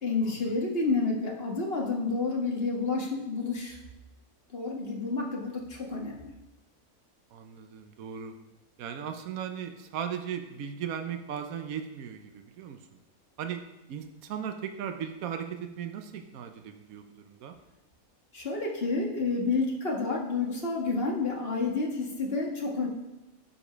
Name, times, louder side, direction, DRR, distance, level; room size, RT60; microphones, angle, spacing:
voice 1, 0.0-3.8 4.5-6.3 18.3-22.9, left 3 dB, 45° left, 0 dB, 1.8 m, -29 dB
voice 2, 7.3-8.4 8.8-12.8 13.4-13.6 13.9-17.6, right 8 dB, 75° right, 6 dB, 1.2 m, -37 dB
11.0 x 5.2 x 5.0 m, 0.96 s
omnidirectional pair, 1.5 m